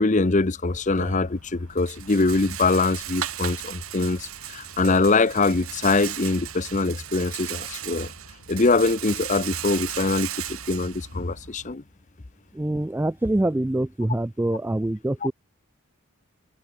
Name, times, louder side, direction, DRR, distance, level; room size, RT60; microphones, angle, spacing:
voice 1, 0.0-8.1 8.5-10.3 10.7-11.8, left 3 dB, 35° left, 0.7 m, -23 dB
Rattle, 0.7-11.7, right 10 dB, 90° right, 3.9 m, -36 dB
voice 2, 12.5-15.3, right 1 dB, 10° right, 0.3 m, -25 dB
head